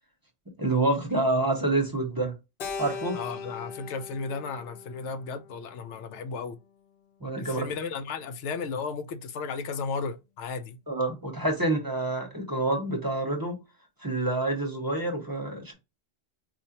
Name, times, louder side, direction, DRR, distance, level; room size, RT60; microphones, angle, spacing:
voice 1, 0.6-2.3 2.8-3.2 7.2-7.7 10.9-13.6 14.0-15.7, right 2 dB, 20° right, 0.7 m, -27 dB
Keyboard (musical), 2.6-7.0, left 5 dB, 60° left, 0.8 m, -40 dB
voice 2, 3.1-6.6 7.4-10.8, left 5 dB, 90° left, 0.9 m, -34 dB
4.3 x 2.4 x 2.8 m
omnidirectional pair, 1.1 m